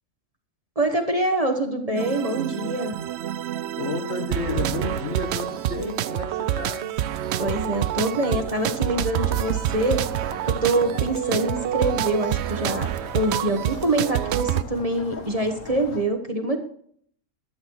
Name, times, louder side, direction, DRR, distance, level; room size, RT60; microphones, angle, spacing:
voice 1, 0.8-3.0 7.4-10.0 10.4-12.9 13.1-16.6, right 1 dB, 30° right, 5 dB, 1.2 m, -25 dB
sound 1, 2.0-14.6, right 12 dB, 65° right, 0.8 m, -27 dB
voice 2, 3.8-6.9, left 3 dB, 60° left, 3 dB, 1.7 m, -31 dB
sound 2, 8.4-16.0, left 5 dB, 85° left, 1.5 m, -42 dB
12.0 x 8.0 x 4.7 m, 0.62 s
omnidirectional pair, 1.3 m